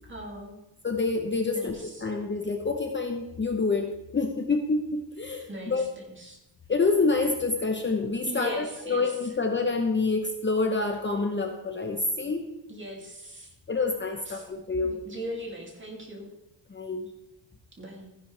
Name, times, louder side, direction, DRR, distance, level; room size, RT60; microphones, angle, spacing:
voice 1, 0.1-0.6 1.5-2.1 5.5-6.4 8.3-9.0 12.7-13.5 14.2-14.4 14.8-16.3 17.8-18.2, right 1 dB, 25° right, 0 dB, 2.8 m, -39 dB
voice 2, 0.8-5.8 6.7-12.5 13.7-14.9 16.7-17.1, left 3 dB, 25° left, 3 dB, 0.9 m, -27 dB
15.0 x 10.5 x 3.4 m, 0.91 s
wide cardioid pair, 160°, 43 cm